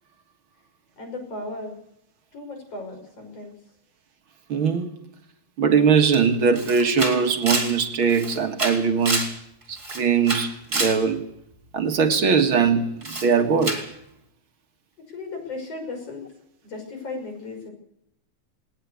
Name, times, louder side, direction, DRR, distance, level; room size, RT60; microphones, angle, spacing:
voice 1, 1.0-1.8 2.3-3.6 15.1-16.3 16.6-17.7, left 2 dB, 50° left, 6.9 m, -35 dB
voice 2, 4.5-4.9 5.6-9.3 9.7-11.2 11.7-13.8, right 6 dB, 50° right, 2.1 m, -21 dB
Camera, 6.1-6.2 6.6-9.4 9.7-11.0 13.0-13.3 13.6-13.9, right 2 dB, 15° right, 3.4 m, -28 dB
19.5 x 19.5 x 8.3 m
omnidirectional pair, 3.4 m